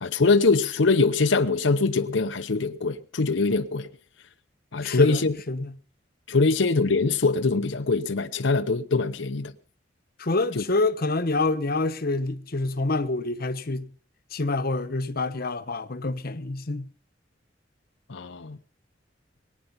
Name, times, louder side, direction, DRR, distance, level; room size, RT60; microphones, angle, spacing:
voice 1, 0.0-3.9 4.7-5.4 6.3-9.5 10.5-10.6 18.1-18.6, left 3 dB, 90° left, 0.8 m, -23 dB
voice 2, 4.8-5.2 5.5-5.7 6.4-6.5 10.2-13.9 14.3-16.9, left 2 dB, 55° left, 1.1 m, -27 dB
23.0 x 9.3 x 5.4 m
head